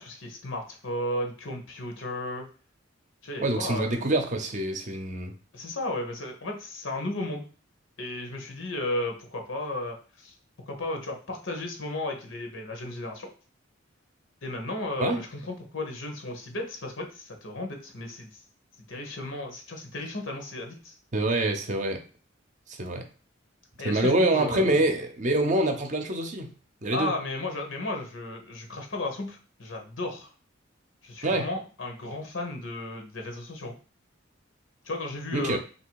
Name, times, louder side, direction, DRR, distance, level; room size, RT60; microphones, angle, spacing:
voice 1, 0.0-2.4 3.2-4.1 5.5-7.4 8.0-10.3 10.6-13.3 14.4-18.4 18.9-20.9 23.8-24.8 26.9-30.3 31.0-33.7 34.8-35.6, left 2 dB, 80° left, 3 dB, 1.1 m, -34 dB
voice 2, 3.4-5.3 15.0-15.2 21.1-22.0 22.7-23.0 23.8-26.5 26.8-27.1 31.2-31.4 35.3-35.6, right 1 dB, 40° right, 5 dB, 0.6 m, -25 dB
3.3 x 2.8 x 4.6 m, 0.38 s
head